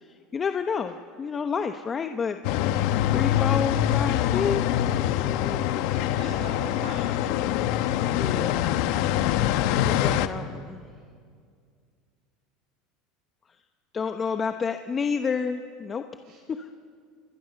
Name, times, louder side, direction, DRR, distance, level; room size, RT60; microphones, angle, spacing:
voice 1, 0.3-2.4 3.1-5.8 8.1-8.8 9.8-10.8 13.9-16.0 16.5-16.7, left 6 dB, 25° left, 7 dB, 0.9 m, -30 dB
sound 1, 2.4-10.3, left 11 dB, 70° left, 1.1 m, -24 dB
voice 2, 5.9-7.2 9.3-9.5 10.9-11.1 16.2-16.5, right 3 dB, 65° right, -1 dB, 6.2 m, -43 dB
27.0 x 22.0 x 7.0 m, 2.1 s
supercardioid pair, 125°, 0 cm